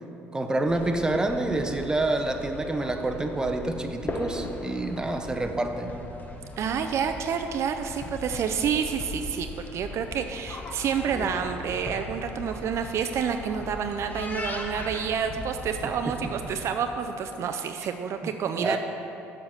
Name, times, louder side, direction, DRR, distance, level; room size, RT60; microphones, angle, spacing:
voice 1, 0.3-5.9 18.6-18.8, right 2 dB, 15° right, 5 dB, 0.7 m, -27 dB
sound 1, 0.7-16.5, left 2 dB, 30° left, 1.0 m, -39 dB
voice 2, 6.6-18.8, right 7 dB, 55° right, 6 dB, 0.4 m, -29 dB
7.0 x 5.8 x 6.4 m, 3.0 s
supercardioid pair, 80°, 6 cm